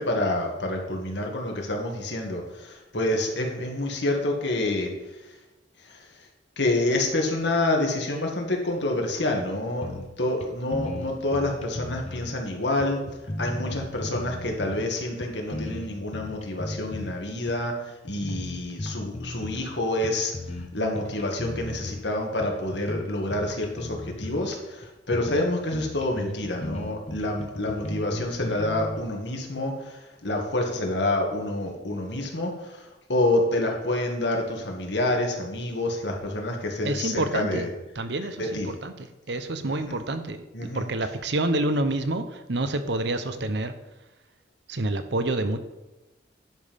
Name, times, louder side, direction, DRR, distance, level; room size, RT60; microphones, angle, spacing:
voice 1, 0.0-4.9 5.9-6.1 6.6-13.0 13.4-20.3 20.7-37.7 38.4-38.7 39.9-40.0 40.5-40.9, left 1 dB, 65° left, 1 dB, 1.8 m, -28 dB
sound 1, 9.8-10.2 10.4-10.5 10.7-12.4 12.8-14.9 15.2-17.1 17.5-17.7 18.1-19.7 20.0-20.7 21.0-22.0 22.4-24.5 24.8-24.9 25.1-25.4 25.7-29.0, left 1 dB, 35° left, 0.9 m, -35 dB
voice 2, 36.8-37.7 38.0-43.7 44.7-45.6, right 2 dB, 65° right, 9 dB, 0.8 m, -28 dB
10.5 x 5.5 x 5.2 m, 1.0 s
head